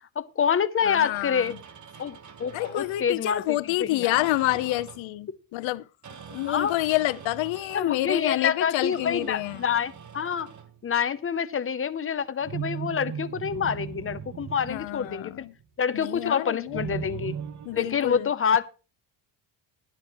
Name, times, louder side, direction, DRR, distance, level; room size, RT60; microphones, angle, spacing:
voice 1, 0.2-1.6 2.0-4.3 5.3-5.4 6.5-6.7 7.7-10.5 10.8-15.4 15.8-17.3 17.7-18.7, left 7 dB, 30° left, 0.6 m, -27 dB
voice 2, 0.8-1.6 2.5-5.8 6.3-9.6 14.7-15.5 15.9-16.8 17.7-18.3, left 17 dB, 75° left, 0.7 m, -28 dB
sound 1, 0.8-3.1 4.1-5.2 6.0-7.9 8.9-10.8 12.4-15.6 16.7-18.2, right 8 dB, 40° right, 1.2 m, -40 dB
13.5 x 12.0 x 3.0 m
cardioid pair, 145°, 47 cm